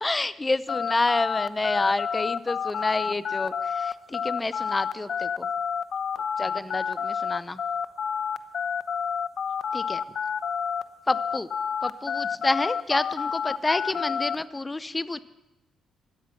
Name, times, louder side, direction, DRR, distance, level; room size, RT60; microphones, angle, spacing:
voice 1, 0.0-5.5 6.4-7.6 9.7-10.0 11.1-11.5 11.8-15.2, left 2 dB, 20° left, 16 dB, 0.7 m, -28 dB
sound 1, 0.7-10.8 11.1-14.4, left 7 dB, 55° left, 0.8 m, -29 dB
17.5 x 12.5 x 5.9 m, 0.96 s
cardioid pair, 90°, 0 cm